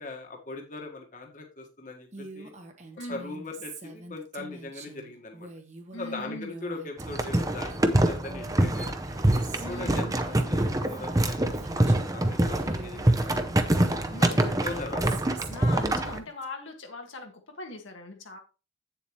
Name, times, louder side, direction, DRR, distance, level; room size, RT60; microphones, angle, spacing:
voice 1, 0.0-2.5 3.1-5.5 6.0-9.0 9.7-13.4 14.2-14.3 14.6-15.0, left 3 dB, 40° left, 2 dB, 1.5 m, -40 dB
Female speech woman speaking, 2.1-12.2 12.6-16.4, right 2 dB, 35° right, 1.2 m, -45 dB
voice 2, 5.9-6.5 9.6-10.2 13.9-14.9 15.5-18.4, left 2 dB, 80° left, 3 dB, 1.6 m, -40 dB
sound 1, 7.0-16.2, right 1 dB, 20° right, 0.7 m, -25 dB
8.6 x 7.2 x 3.1 m, 0.31 s
head